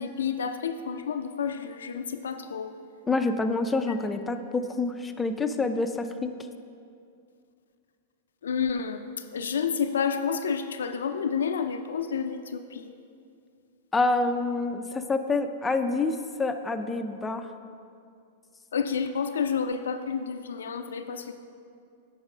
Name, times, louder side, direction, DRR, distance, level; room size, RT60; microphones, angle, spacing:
voice 1, 0.0-2.7 8.4-9.0 9.3-12.9 18.7-21.3, left 6 dB, 85° left, 7 dB, 0.4 m, -30 dB
voice 2, 3.1-6.3 13.9-17.5, left 3 dB, 15° left, 8 dB, 0.4 m, -27 dB
8.6 x 4.1 x 5.4 m, 2.4 s
hypercardioid pair, 120°, 0 cm